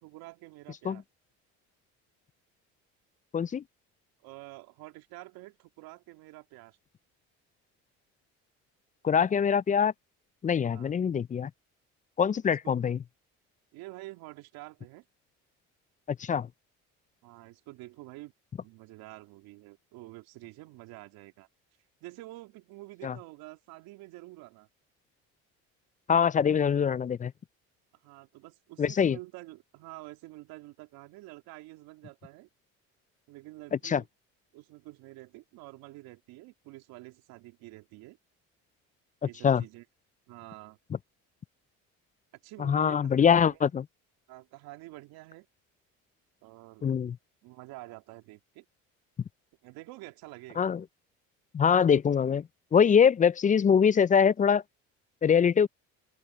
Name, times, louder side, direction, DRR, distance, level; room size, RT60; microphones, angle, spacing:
voice 1, 0.0-1.0 4.2-6.8 10.7-10.9 12.6-12.8 13.7-15.0 17.2-18.3 18.6-21.5 22.0-24.7 28.0-32.5 33.3-34.1 34.5-38.2 39.2-39.8 40.3-40.8 42.4-43.6 44.3-45.5 46.4-46.9 47.4-48.6 49.6-50.7, right 19 dB, 75° right, 2.8 m, -48 dB
voice 2, 3.3-3.6 9.0-9.9 10.4-11.5 12.2-13.0 16.2-16.5 23.0-23.1 26.1-27.3 28.8-29.2 33.8-34.0 39.4-39.6 42.6-43.9 46.8-47.2 50.6-50.8 51.5-52.5 52.7-54.6 55.2-55.7, left 7 dB, 20° left, 0.4 m, -23 dB
open air
supercardioid pair, 75°, 37 cm